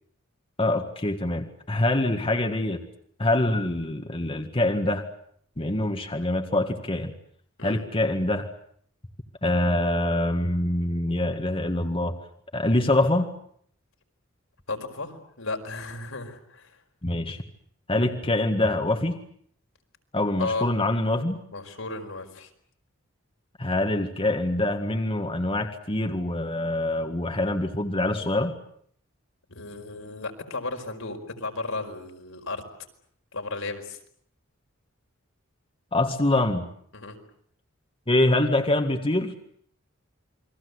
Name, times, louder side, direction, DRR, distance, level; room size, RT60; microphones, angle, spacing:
voice 1, 0.6-2.8 3.2-5.0 5.6-7.1 7.6-8.5 9.4-12.2 12.5-13.3 17.0-17.4 17.9-19.2 20.1-21.4 23.6-28.5 35.9-36.7 38.1-39.3, left 1 dB, 25° left, 4 dB, 1.9 m, -25 dB
voice 2, 14.7-16.8 20.4-20.7 21.5-22.5 29.5-32.6 33.3-34.0 36.9-37.2, left 3 dB, 80° left, 3 dB, 4.9 m, -34 dB
29.0 x 22.5 x 8.2 m, 0.64 s
head